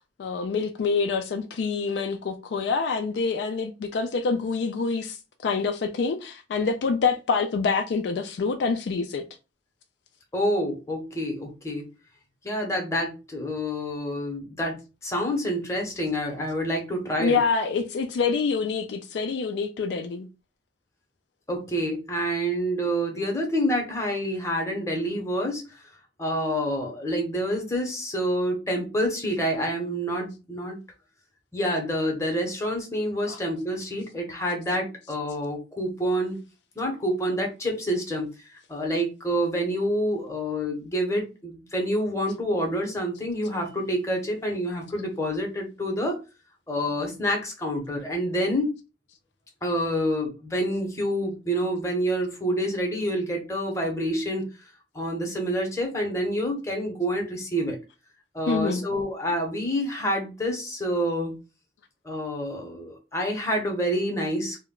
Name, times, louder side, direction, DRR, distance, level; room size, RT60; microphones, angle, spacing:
voice 1, 0.2-9.2 17.2-20.3 33.3-33.4 58.5-58.9, left 4 dB, 65° left, 0.3 m, -26 dB
voice 2, 10.3-11.9 12.4-17.4 21.5-25.9 26.2-30.8 31.5-36.4 36.8-38.3 38.7-46.2 46.7-48.7 49.6-54.5 54.9-57.8 58.3-61.4 62.0-64.6, equal, 15° left, 0.8 m, -27 dB
2.2 x 2.1 x 3.6 m
head